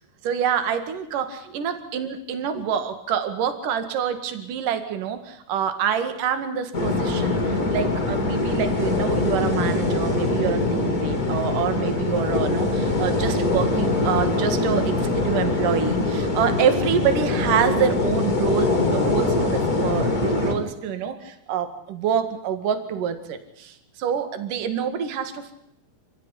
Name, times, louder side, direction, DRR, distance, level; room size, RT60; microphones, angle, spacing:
voice 1, 0.2-25.5, right 8 dB, 60° right, 9 dB, 3.4 m, -26 dB
sound 1, 6.7-20.5, left 2 dB, 25° left, 3.3 m, -23 dB
28.0 x 15.5 x 9.9 m, 0.76 s
omnidirectional pair, 4.7 m